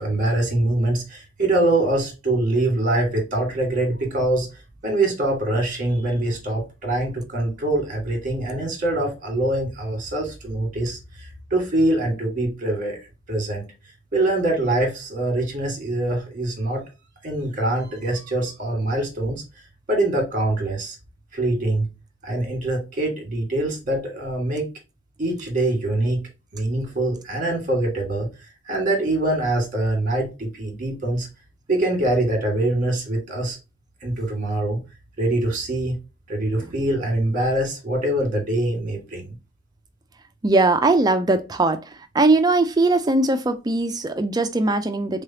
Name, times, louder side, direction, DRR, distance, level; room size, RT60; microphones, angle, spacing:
voice 1, 0.0-4.5 4.8-13.0 13.3-13.7 14.1-16.8 17.2-19.4 19.9-21.0 21.3-21.9 22.2-24.6 25.2-26.2 26.5-31.3 31.7-33.6 34.0-34.8 35.2-36.0 36.3-39.4, right 1 dB, 40° right, 1.5 m, -24 dB
voice 2, 40.4-45.2, right 2 dB, 20° right, 0.4 m, -20 dB
3.7 x 3.3 x 2.7 m
head